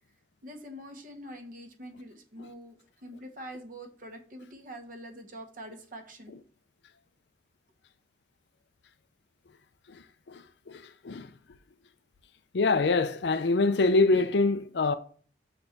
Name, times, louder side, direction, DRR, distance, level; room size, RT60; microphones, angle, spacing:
voice 1, 0.4-2.8 3.0-6.3, equal, 50° right, 1.2 m, -44 dB
voice 2, 12.5-14.9, left 3 dB, 75° left, 0.5 m, -24 dB
6.5 x 4.4 x 5.8 m
head